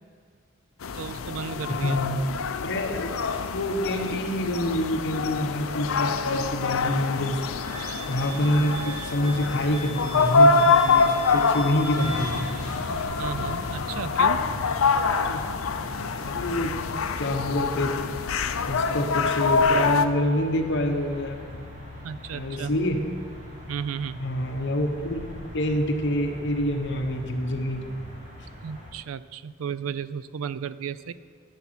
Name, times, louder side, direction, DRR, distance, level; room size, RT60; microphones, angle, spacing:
sound 1, 0.8-20.1, left 4 dB, 80° left, 0.5 m, -25 dB
voice 1, 0.9-2.0 13.2-14.4 22.0-22.7 23.7-24.2 28.6-31.1, right 7 dB, 85° right, 16 dB, 0.4 m, -34 dB
voice 2, 1.7-2.2 2.6-3.1 3.5-7.4 8.1-12.5 15.2-15.4 16.2-16.7 17.2-18.0 18.7-21.6 22.3-23.0 24.2-25.2 25.5-27.8, left 1 dB, 60° left, 3 dB, 1.1 m, -27 dB
Wind instrument woodwind instrument, 7.6-12.5, right 3 dB, 5° left, 2.8 m, -41 dB
sound 2, 11.9-28.9, left 1 dB, 35° right, 2.2 m, -40 dB
10.5 x 7.3 x 5.9 m, 2.2 s
head